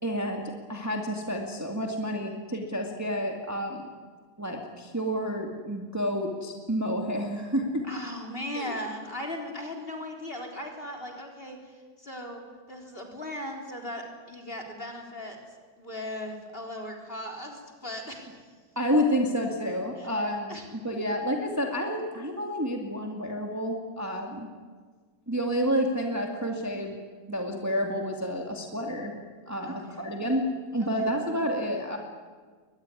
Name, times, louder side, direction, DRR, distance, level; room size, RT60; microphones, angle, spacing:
voice 1, 0.0-3.9 4.4-7.9 8.5-8.7 18.8-24.5 25.3-27.0 27.3-29.1 29.5-30.4 30.7-32.0, equal, 10° right, 2 dB, 2.1 m, -29 dB
voice 2, 7.9-12.4 12.7-15.4 15.8-18.4 20.0-20.1 20.5-20.6 29.6-30.1 30.8-31.1, left 1 dB, 30° left, 2 dB, 4.0 m, -38 dB
22.5 x 20.5 x 9.9 m, 1.5 s
omnidirectional pair, 2.1 m